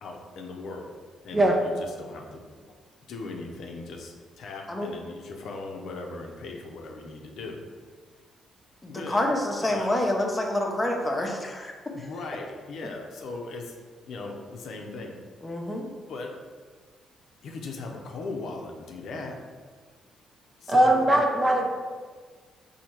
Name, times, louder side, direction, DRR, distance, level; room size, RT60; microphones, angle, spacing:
voice 1, 0.0-0.9 1.2-2.8 3.1-7.6 8.9-9.3 9.6-10.0 11.9-13.8 14.1-15.1 16.1-16.3 17.4-19.4 20.6-21.1, left 3 dB, 70° left, 2 dB, 0.6 m, -38 dB
voice 2, 8.8-11.7 12.0-12.1 15.4-15.9, left 1 dB, 15° left, 0 dB, 0.7 m, -27 dB
voice 3, 20.7-21.7, right 1 dB, 25° right, 1 dB, 0.6 m, -20 dB
4.2 x 2.8 x 4.4 m, 1.6 s
cardioid pair, 90°, 0 cm